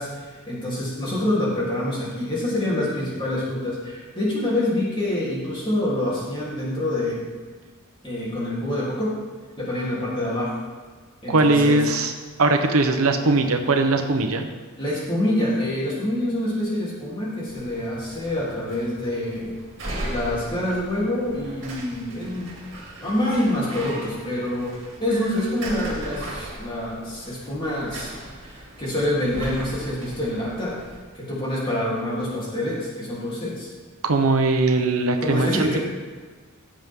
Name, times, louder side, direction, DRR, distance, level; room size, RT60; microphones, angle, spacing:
voice 1, 0.0-7.3 8.0-9.1 9.6-10.6 11.2-11.8 14.8-19.5 20.1-22.5 23.0-24.7 25.0-28.1 28.4-30.8 31.1-33.7 35.2-35.8, left 1 dB, 25° left, -7 dB, 3.4 m, -26 dB
voice 2, 11.3-12.1 12.4-14.5 34.0-35.8, right 2 dB, 80° right, 5 dB, 0.9 m, -20 dB
sound 1, 17.5-31.0, right 1 dB, 55° right, 2.6 m, -38 dB
15.5 x 7.6 x 3.7 m, 1.5 s
head